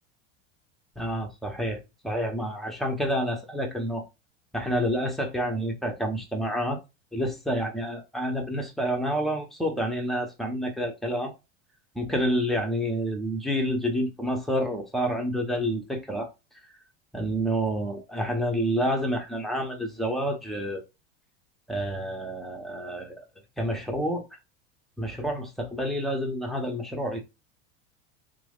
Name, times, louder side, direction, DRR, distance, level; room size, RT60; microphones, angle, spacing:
voice 1, 1.0-4.0 4.5-6.8 7.1-11.3 11.9-16.3 17.1-20.8 21.7-23.2 23.6-24.2 25.0-27.2, equal, ahead, 0.8 m, -28 dB
3.2 x 2.1 x 2.3 m
hypercardioid pair, 90°, 36 cm